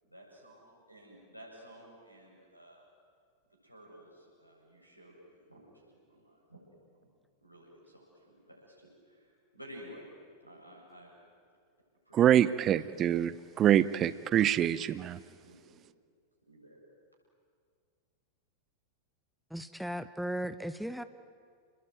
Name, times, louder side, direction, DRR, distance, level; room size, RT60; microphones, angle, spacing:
voice 1, 0.0-2.8 3.6-6.6 7.4-10.1 10.4-11.1 12.1-13.5 14.8-15.0 15.4-15.8 16.5-16.8, equal, 90° left, -2 dB, 8.0 m, -54 dB
voice 2, 12.1-15.2, right 10 dB, 30° right, 17 dB, 0.8 m, -25 dB
voice 3, 19.5-21.0, equal, ahead, 12 dB, 0.9 m, -36 dB
29.5 x 21.0 x 9.4 m, 2.1 s
figure-of-eight pair, 90°, 0 cm